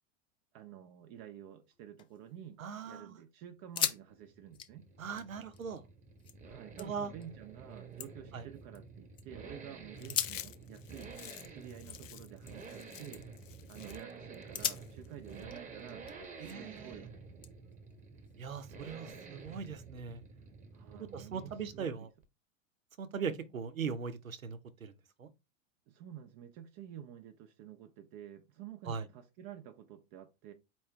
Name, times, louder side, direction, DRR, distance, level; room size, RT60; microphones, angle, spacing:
voice 1, 0.5-2.6 2.8-4.8 6.4-11.2 11.5-13.3 13.7-16.1 16.4-17.1 20.7-22.1 25.9-30.5, right 10 dB, 40° right, 0.6 m, -50 dB
sound 1, 1.7-2.8 3.1-3.2 3.6-4.0 4.3-6.4 6.8-7.3 7.7-9.2 9.9-12.8 13.1-13.5 13.9-14.1 14.5-16.8 17.4-18.6, left 9 dB, 15° left, 0.3 m, -41 dB
voice 2, 2.6-3.2 5.0-5.8 6.8-7.1 8.3-8.4 16.4-17.1 18.4-20.2 20.9-22.1 23.0-24.9 25.2-25.3 28.9-29.0, right 6 dB, 90° right, 0.8 m, -40 dB
Accelerating revving vroom, 3.8-22.0 22.2-22.3, right 4 dB, 20° right, 1.1 m, -50 dB
Chewing mastication, 10.0-15.4, left 12 dB, 75° left, 0.7 m, -50 dB
4.5 x 3.0 x 3.3 m
hypercardioid pair, 100°, 39 cm